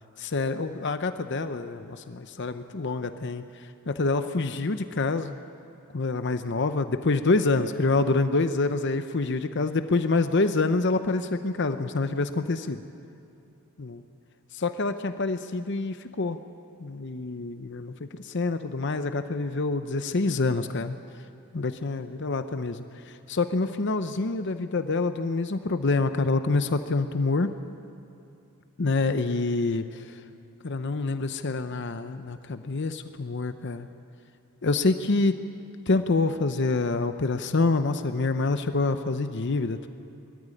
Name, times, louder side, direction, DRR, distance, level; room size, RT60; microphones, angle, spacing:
voice 1, 0.2-3.4 3.9-5.3 5.9-12.8 14.5-16.4 16.8-20.9 21.5-22.8 23.3-27.5 28.8-30.0 30.6-33.9 34.6-35.3 35.9-39.9, left 3 dB, 55° left, 9 dB, 0.7 m, -26 dB
22.0 x 14.0 x 9.8 m, 2.7 s
head